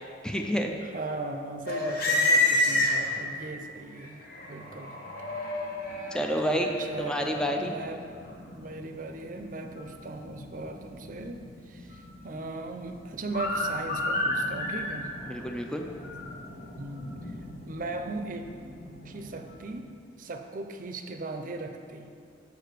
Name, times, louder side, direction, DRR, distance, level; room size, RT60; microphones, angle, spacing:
voice 1, 0.2-0.7 6.1-6.7 7.0-7.7 15.3-15.9, equal, 5° left, 2 dB, 0.4 m, -29 dB
voice 2, 0.8-5.0 6.4-8.0 8.5-15.1 16.4-18.4 19.0-19.9 20.2-22.1, right 3 dB, 50° right, 6 dB, 0.6 m, -38 dB
sound 1, 1.7-3.4 4.0-19.8, left 2 dB, 55° left, 1.1 m, -32 dB
6.7 x 4.8 x 6.7 m, 2.3 s
head